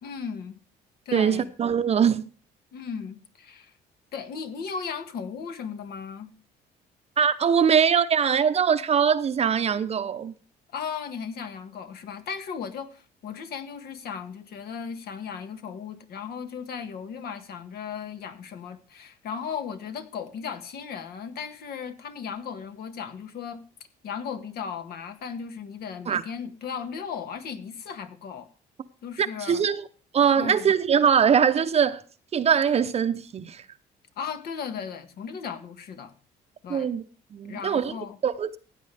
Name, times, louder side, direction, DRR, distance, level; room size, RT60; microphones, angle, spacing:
voice 1, 0.0-0.6 1.0-1.5 2.7-3.7 4.1-6.3 10.7-23.6 24.0-28.5 29.0-29.6 30.3-30.7 34.2-36.1 36.6-36.9 37.4-38.2, left 6 dB, 65° left, 1.7 m, -36 dB
voice 2, 1.1-2.3 7.2-10.3 26.1-26.2 29.2-29.8 30.1-32.0 32.3-33.6 36.7-37.0 37.3-38.0 38.2-38.6, right 7 dB, 40° right, 0.7 m, -22 dB
16.0 x 8.7 x 3.4 m
cardioid pair, 110°, 17 cm